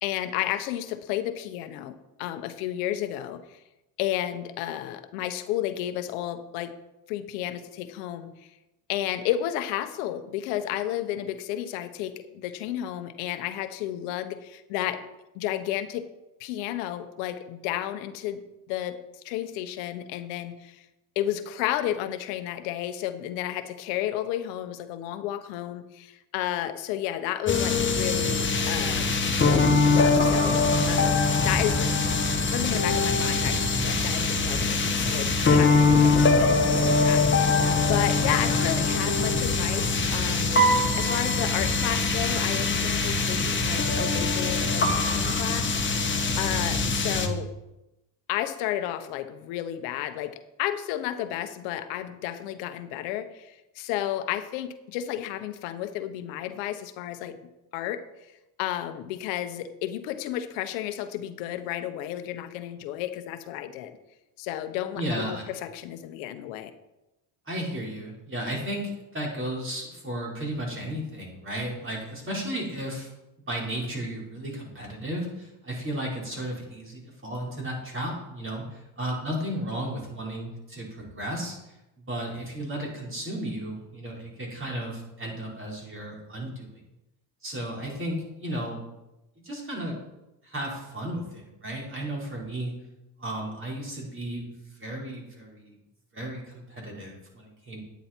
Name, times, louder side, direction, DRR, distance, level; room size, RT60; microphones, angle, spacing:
voice 1, 0.0-3.6 4.0-6.7 7.1-8.3 8.9-15.1 15.3-16.1 16.4-19.0 19.2-20.8 21.2-29.1 29.4-30.6 30.9-31.9 32.5-40.5 41.0-45.8 46.3-47.5 48.3-57.4 57.7-58.3 58.6-63.9 64.4-66.7, left 12 dB, 90° left, 10 dB, 1.0 m, -32 dB
sound 1, 27.5-47.3, left 3 dB, 25° left, 1.5 m, -23 dB
voice 2, 64.9-65.5 67.5-73.1 73.5-81.6 82.1-86.7 87.4-88.8 89.4-90.0 90.4-92.7 93.2-95.8 96.1-97.8, right 1 dB, 25° right, -2 dB, 4.5 m, -34 dB
10.5 x 9.3 x 4.4 m, 0.95 s
supercardioid pair, 95°, 46 cm